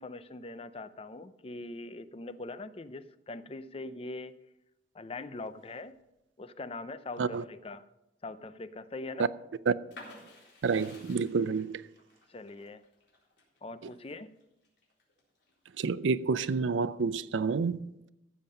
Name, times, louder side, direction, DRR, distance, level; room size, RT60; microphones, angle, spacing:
voice 1, 0.0-4.3 4.9-6.0 6.4-7.8 8.2-9.3 12.3-12.8 13.6-14.3, left 2 dB, 30° left, 0.5 m, -42 dB
sound 1, 9.9-15.5 16.0-16.8, left 2 dB, 70° left, 4.0 m, -53 dB
voice 2, 10.6-11.8 15.8-17.8, right 5 dB, 85° right, 0.5 m, -29 dB
15.0 x 7.4 x 5.6 m
head